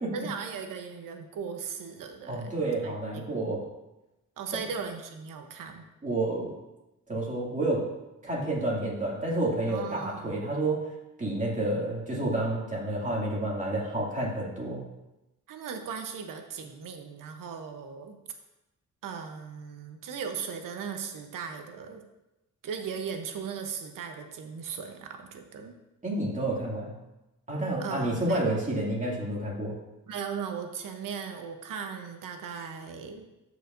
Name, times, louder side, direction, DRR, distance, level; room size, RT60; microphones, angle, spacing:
voice 1, 0.1-3.4 4.4-5.9 9.7-10.6 15.5-18.2 19.0-22.0 22.6-25.7 27.8-28.4 30.1-33.3, right 6 dB, 85° right, 6 dB, 0.9 m, -38 dB
voice 2, 2.3-3.6 6.0-6.5 7.1-7.8 8.2-10.9 11.2-14.8 26.0-26.9 27.5-29.8, right 1 dB, 25° right, -4 dB, 2.4 m, -29 dB
13.0 x 5.0 x 2.6 m, 0.99 s
cardioid pair, 100°, 32 cm